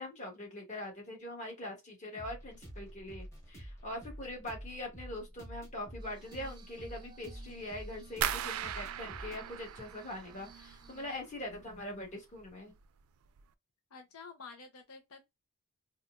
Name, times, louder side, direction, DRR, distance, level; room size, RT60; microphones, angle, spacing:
voice 1, 0.0-12.7, left 1 dB, 35° left, 1.6 m, -43 dB
sound 1, 2.2-11.8, equal, 15° left, 1.2 m, -49 dB
Glass, 6.0-11.2, right 7 dB, 20° right, 0.5 m, -58 dB
sound 2, 8.2-11.1 11.4-12.1 12.4-12.8 13.3-13.4, right 10 dB, 80° right, 0.4 m, -38 dB
voice 2, 13.9-15.2, left 4 dB, 90° left, 0.7 m, -50 dB
4.2 x 2.4 x 2.4 m
head